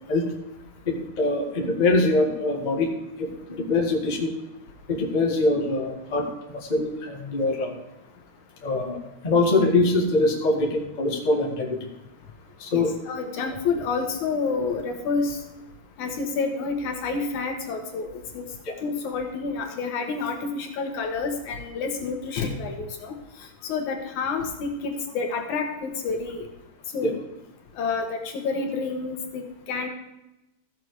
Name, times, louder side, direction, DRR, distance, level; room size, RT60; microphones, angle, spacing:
voice 1, 0.8-2.9 3.2-4.3 4.9-6.2 6.5-7.8 8.6-9.0 9.2-11.9 12.6-12.9 18.6-18.7 27.0-27.1, left 2 dB, 20° left, 0 dB, 1.2 m, -23 dB
voice 2, 12.7-15.4 16.0-18.1 18.3-18.4 18.8-26.5 26.9-27.2 27.8-29.9, left 4 dB, 75° left, 3 dB, 2.7 m, -29 dB
14.5 x 7.0 x 4.7 m, 0.93 s
omnidirectional pair, 3.5 m